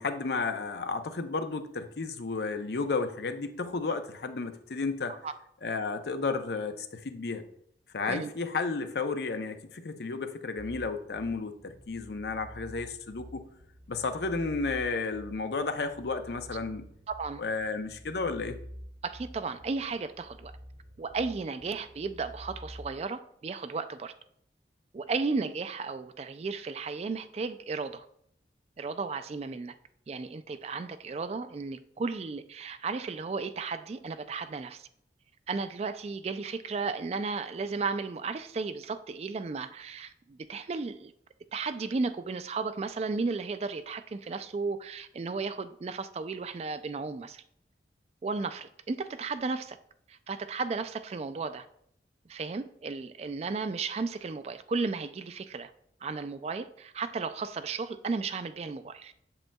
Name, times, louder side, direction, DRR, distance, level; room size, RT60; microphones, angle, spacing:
voice 1, 0.0-5.1 5.6-7.4 7.9-13.4 13.9-16.9 17.4-18.6, left 4 dB, 65° left, 0.6 m, -32 dB
sound 1, 10.6-23.1, equal, 85° right, 1.8 m, -49 dB
voice 2, 17.1-17.4 19.0-20.5 21.0-24.1 24.9-28.1 28.8-29.7 30.1-34.9 35.5-41.1 41.5-47.4 48.2-49.8 50.1-51.7 52.3-55.7 56.0-59.1, right 4 dB, 35° right, 0.3 m, -34 dB
7.8 x 7.3 x 2.2 m
head